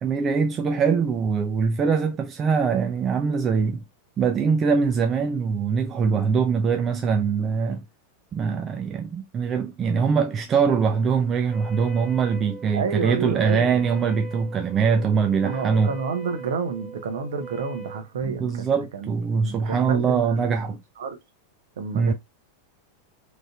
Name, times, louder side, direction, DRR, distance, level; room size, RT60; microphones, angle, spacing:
voice 1, 0.0-3.8 4.2-7.9 8.3-15.9 18.2-20.8 21.9-22.1, right 6 dB, 25° right, 0.5 m, -23 dB
voice 2, 6.0-6.4 12.7-13.9 15.4-18.6 18.9-20.7 21.0-21.2 21.8-22.1, right 5 dB, 60° right, 1.0 m, -30 dB
Wind instrument woodwind instrument, 11.4-18.1, right 5 dB, 10° right, 1.1 m, -40 dB
3.8 x 3.2 x 2.4 m
figure-of-eight pair, 90°, 0 cm